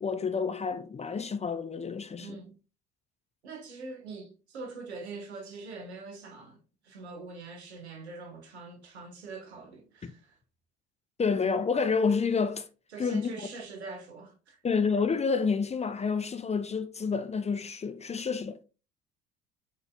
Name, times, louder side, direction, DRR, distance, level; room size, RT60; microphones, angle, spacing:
voice 1, 0.0-2.4 10.0-10.1 11.2-12.7 13.0-13.3 14.6-18.6, left 5 dB, 20° left, 0.5 m, -29 dB
voice 2, 2.2-2.6 3.4-10.4 12.9-14.6, right 3 dB, 90° right, 1.0 m, -43 dB
5.4 x 3.9 x 2.3 m
hypercardioid pair, 60°, 32 cm